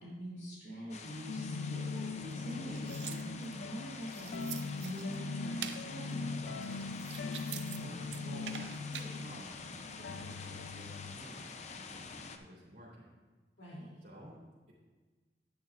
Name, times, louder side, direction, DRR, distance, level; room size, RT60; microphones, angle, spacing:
voice 1, 0.0-6.8 13.6-13.9, equal, 70° left, -6 dB, 3.0 m, -44 dB
sound 1, 0.9-12.4, left 4 dB, 40° left, 0.6 m, -47 dB
sound 2, 1.3-11.2, left 4 dB, 85° left, 0.4 m, -41 dB
sound 3, 2.3-3.6 4.0-5.2 5.6-5.8 6.5-7.8 8.1-9.1, right 10 dB, 80° right, 0.5 m, -45 dB
voice 2, 7.7-13.1 14.0-14.4, equal, 55° right, -8 dB, 2.9 m, -51 dB
10.5 x 9.5 x 2.5 m, 1.3 s
head